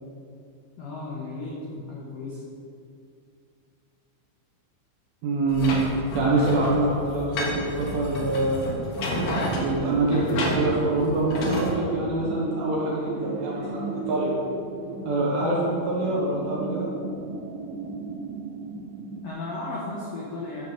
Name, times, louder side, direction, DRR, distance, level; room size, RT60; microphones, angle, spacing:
voice 1, 0.8-2.4 19.2-20.6, left 2 dB, 85° left, -4 dB, 1.9 m, -35 dB
voice 2, 5.2-5.8 6.1-8.7 9.5-14.4 15.0-16.9, right 2 dB, 65° right, -5 dB, 2.7 m, -25 dB
sound 1, 5.5-11.7, left 1 dB, 70° left, 2.4 m, -31 dB
sound 2, 9.1-19.3, right 4 dB, 85° right, 2.4 m, -34 dB
9.8 x 4.3 x 7.2 m, 2.4 s
omnidirectional pair, 5.6 m